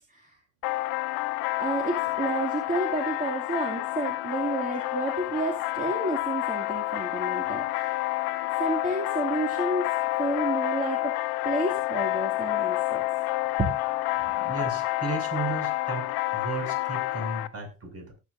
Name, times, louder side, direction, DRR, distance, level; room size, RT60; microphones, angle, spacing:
sound 1, 0.6-17.5, left 18 dB, 70° left, 1.0 m, -29 dB
voice 1, 1.6-8.0 8.6-9.9 10.2-11.2 11.4-13.0 13.6-13.7 14.3-14.5, right 2 dB, 20° right, 1 dB, 2.5 m, -30 dB
voice 2, 14.4-18.1, right 3 dB, 40° right, 2 dB, 6.6 m, -34 dB
18.5 x 8.2 x 2.7 m, 0.28 s
hypercardioid pair, 65°, 38 cm